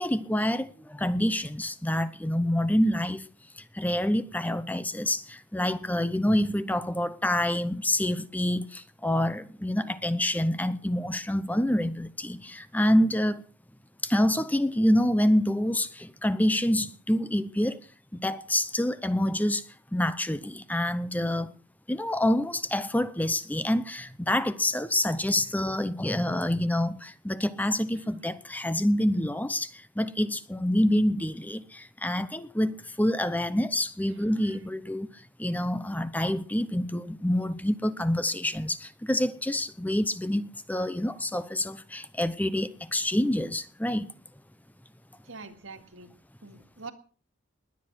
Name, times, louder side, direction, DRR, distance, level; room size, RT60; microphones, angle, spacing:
voice 1, 0.0-3.3 3.5-13.4 14.0-17.8 18.1-19.6 19.9-21.5 21.9-44.1, left 1 dB, 10° left, 0.8 m, -27 dB
voice 2, 34.1-34.6 45.2-46.1 46.4-46.9, right 4 dB, 80° right, 2.3 m, -45 dB
20.0 x 9.8 x 6.3 m
head